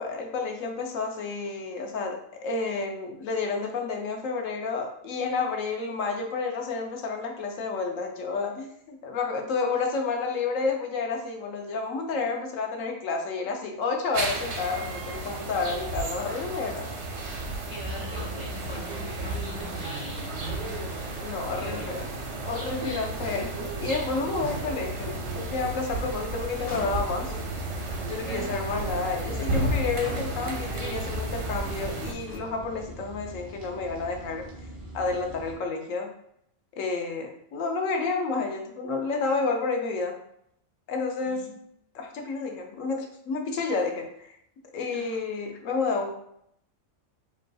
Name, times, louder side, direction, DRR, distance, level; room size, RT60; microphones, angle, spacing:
voice 1, 0.0-16.9 21.2-22.1 22.4-27.4 28.1-34.5 34.9-36.1 36.7-40.2 40.9-41.5 41.9-44.4 44.7-46.1, left 4 dB, 75° left, 3 dB, 1.1 m, -30 dB
sound 1, 14.1-32.1, right 2 dB, 70° right, 1.1 m, -33 dB
sound 2, 16.3-35.5, right 1 dB, 20° right, 0.8 m, -45 dB
voice 2, 17.6-20.3 21.6-22.1 22.8-23.1 28.2-28.5 41.2-41.6 44.9-45.2, equal, 45° right, -3 dB, 0.5 m, -42 dB
sound 3, 18.6-32.4, equal, 45° left, 1.8 m, -44 dB
5.0 x 3.1 x 2.3 m, 0.72 s
omnidirectional pair, 1.4 m